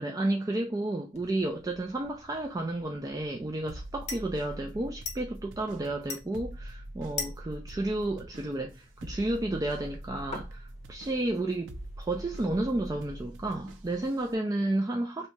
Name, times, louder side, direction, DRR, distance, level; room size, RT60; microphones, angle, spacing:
voice 1, 0.0-15.3, right 2 dB, 20° right, 0.3 m, -32 dB
sound 1, 1.1-13.9, left 4 dB, 35° left, 0.8 m, -46 dB
sound 2, 3.7-14.3, right 1 dB, 85° right, 0.6 m, -44 dB
2.7 x 2.2 x 4.0 m
head